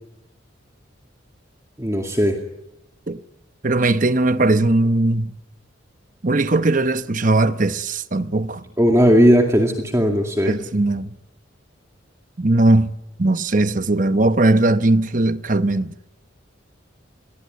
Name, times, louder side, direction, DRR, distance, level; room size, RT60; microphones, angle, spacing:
voice 1, 1.8-2.3 8.8-10.5, equal, 15° right, 2.3 m, -16 dB
voice 2, 3.6-5.3 6.2-8.6 10.4-11.1 12.4-12.9 13.2-15.9, right 2 dB, 40° right, 1.0 m, -19 dB
28.5 x 22.5 x 9.5 m
head